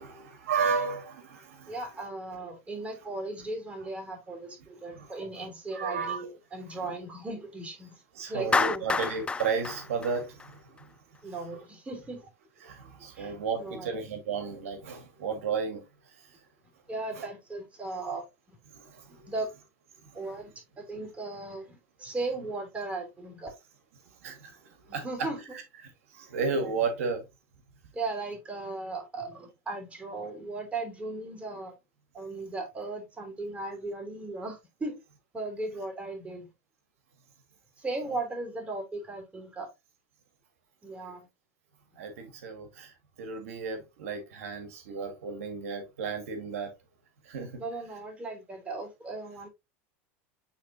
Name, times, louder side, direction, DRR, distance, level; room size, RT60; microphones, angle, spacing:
voice 1, 0.0-1.8 4.9-5.5 5.7-6.3 6.8-6.9 8.1-10.6 12.6-15.8 17.1-17.2 18.9-19.3 24.2-24.6 24.9-25.3 26.1-27.2 38.0-38.2 42.0-42.9 43.2-46.7 47.3-47.6, right 5 dB, 85° right, 1.7 m, -33 dB
voice 2, 1.7-8.0 8.3-9.0 11.2-12.2 13.1-13.9 16.9-18.6 19.1-19.5 20.1-20.5 20.8-23.5 24.9-25.4 27.9-31.7 32.1-35.0 35.3-36.5 37.8-39.7 40.8-41.3 47.6-49.5, right 2 dB, 15° right, 3.0 m, -37 dB
Clapping, 8.5-10.8, left 4 dB, 15° left, 0.3 m, -29 dB
9.1 x 3.8 x 2.7 m
supercardioid pair, 110°, 7 cm